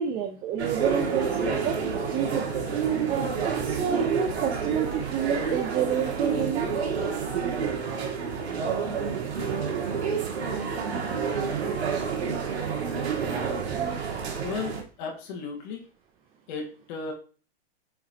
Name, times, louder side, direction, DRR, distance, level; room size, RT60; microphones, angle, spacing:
voice 1, 0.0-1.8 2.1-2.7 3.1-6.7 13.7-13.8, right 7 dB, 15° right, 4 dB, 0.5 m, -29 dB
sound 1, 0.6-14.8, right 6 dB, 90° right, 2.2 m, -29 dB
sound 2, 0.8-14.5, right 6 dB, 70° right, 2.8 m, -46 dB
voice 2, 14.4-15.9 16.5-17.1, left 5 dB, 45° left, 0 dB, 2.1 m, -35 dB
8.2 x 4.7 x 2.9 m, 0.38 s
hypercardioid pair, 150°, 32 cm